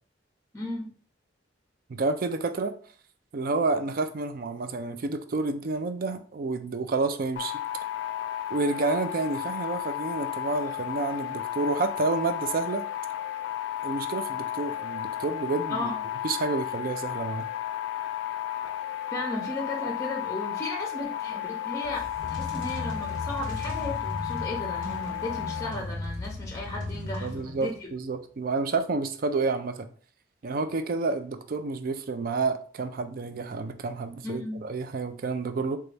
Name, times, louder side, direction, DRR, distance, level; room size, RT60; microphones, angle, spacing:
voice 1, 0.5-0.9 15.7-16.0 19.1-22.0 22.3-27.9 34.2-34.6, left 1 dB, 15° left, 0 dB, 0.6 m, -35 dB
voice 2, 1.9-2.7 3.3-7.6 8.5-12.9 13.8-15.9 16.2-17.5 27.2-29.9 30.4-35.8, right 3 dB, 50° right, 9 dB, 0.4 m, -29 dB
sound 1, 7.4-25.7, left 12 dB, 75° left, 0.3 m, -33 dB
sound 2, 21.8-27.8, left 2 dB, 75° right, 1.3 m, -36 dB
3.9 x 2.3 x 3.3 m, 0.44 s
head